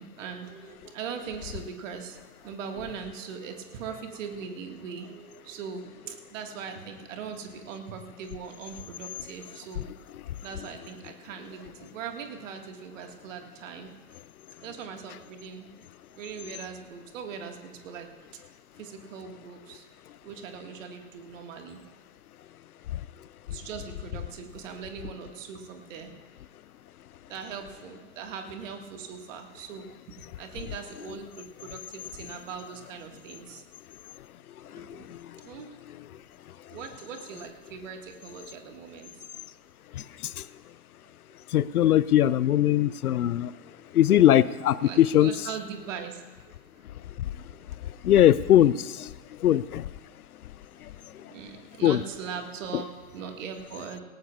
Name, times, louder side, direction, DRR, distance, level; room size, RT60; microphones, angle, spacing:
voice 1, 0.0-9.9 10.4-13.9 14.6-15.9 16.1-18.1 18.8-19.9 20.2-21.8 23.5-26.1 27.3-29.9 30.4-33.6 34.7-35.0 35.4-35.8 36.1-36.2 36.7-39.2 43.8-43.9 44.8-47.0 47.5-47.9 50.7-54.0, right 6 dB, 55° right, 4 dB, 1.8 m, -40 dB
voice 2, 34.7-35.2 39.9-40.4 41.5-43.5 43.9-45.3 48.0-49.1 49.4-49.9 51.8-52.0, left 12 dB, 70° left, 19 dB, 0.5 m, -21 dB
18.5 x 18.0 x 2.4 m, 1.4 s
figure-of-eight pair, 100°, 46 cm